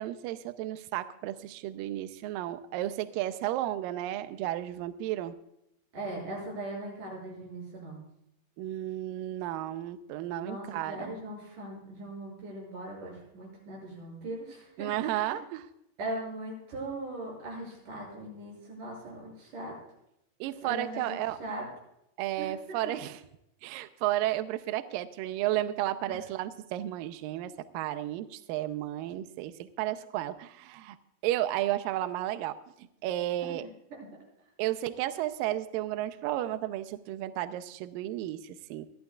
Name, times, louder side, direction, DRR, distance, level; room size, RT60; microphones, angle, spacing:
voice 1, 0.0-5.4 8.6-11.2 14.8-15.7 20.4-21.4 22.2-23.2 23.6-31.0 31.2-33.7 34.6-38.9, right 14 dB, 90° right, 11 dB, 2.0 m, -33 dB
voice 2, 5.9-8.0 10.4-15.4 16.0-19.8 20.6-21.7 22.4-22.8 26.1-26.2 33.4-33.5, right 1 dB, 50° right, -2 dB, 8.3 m, -40 dB
27.5 x 11.5 x 2.4 m, 0.79 s
omnidirectional pair, 4.8 m